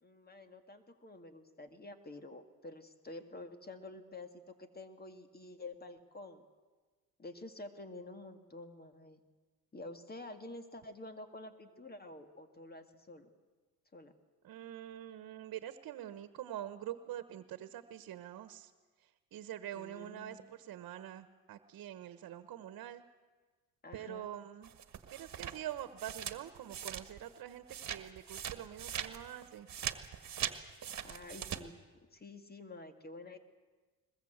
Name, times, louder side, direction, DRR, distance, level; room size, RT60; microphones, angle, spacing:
voice 1, 0.0-6.4 7.2-9.2 9.7-13.3 13.9-14.1 19.7-20.4 23.8-24.3 31.0-31.7 32.1-33.4, left 2 dB, 25° left, 8 dB, 2.1 m, -49 dB
voice 2, 14.4-18.7 19.3-23.0 23.9-24.7 25.1-29.7, right 12 dB, 70° right, 11 dB, 1.2 m, -45 dB
sound 1, 24.6-27.4 27.7-31.6, right 9 dB, 50° right, 1.6 m, -41 dB
21.5 x 21.0 x 8.1 m, 1.3 s
cardioid pair, 90°, 35 cm